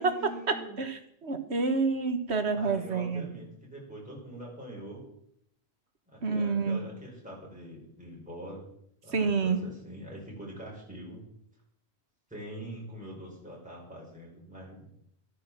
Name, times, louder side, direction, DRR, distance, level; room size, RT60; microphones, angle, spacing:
voice 1, 0.0-0.8 2.5-5.0 6.1-8.6 9.0-11.2 12.3-14.9, right 1 dB, 5° right, -4 dB, 5.5 m, -44 dB
voice 2, 0.8-3.3 6.2-6.8 9.1-9.6, right 4 dB, 75° right, 8 dB, 1.8 m, -28 dB
14.0 x 9.5 x 7.6 m, 0.73 s
omnidirectional pair, 1.1 m